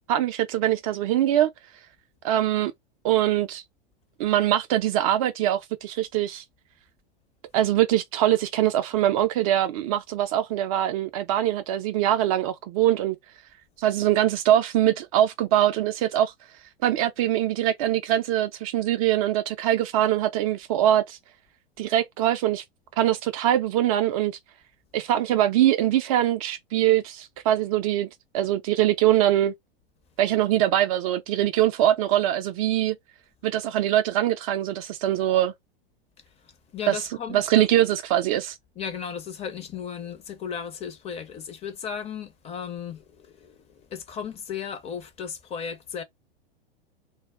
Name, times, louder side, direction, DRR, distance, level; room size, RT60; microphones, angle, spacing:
voice 1, 0.1-1.5 2.2-2.7 3.0-3.6 4.2-6.4 7.5-13.2 13.8-16.3 16.8-21.2 21.8-22.6 23.0-24.4 24.9-28.1 28.3-29.5 30.2-33.0 33.4-35.5 36.9-38.6, right 12 dB, 40° right, 0.4 m, -23 dB
voice 2, 36.7-37.7 38.8-46.0, left 7 dB, 20° left, 0.6 m, -35 dB
2.1 x 2.0 x 3.5 m
figure-of-eight pair, 95°, 29 cm